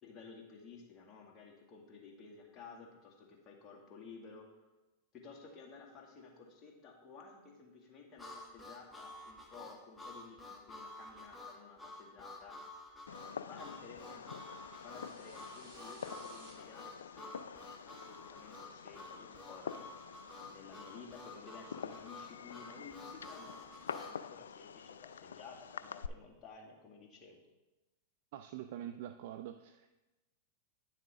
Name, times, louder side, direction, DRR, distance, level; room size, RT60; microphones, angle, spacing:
voice 1, 0.0-4.6 5.1-12.6 13.5-14.3 14.7-19.9 20.5-27.4, left 5 dB, 35° left, -1 dB, 2.0 m, -54 dB
Harmonica, 8.2-24.2, left 2 dB, 10° left, 1.4 m, -51 dB
Fireworks, 13.1-26.1, left 7 dB, 85° left, 0.3 m, -47 dB
sound 1, 14.4-16.5, right 4 dB, 45° right, 2.1 m, -60 dB
voice 2, 28.3-29.9, right 11 dB, 60° right, 9 dB, 0.4 m, -45 dB
9.7 x 7.1 x 3.5 m, 1.1 s
hypercardioid pair, 110°, 0 cm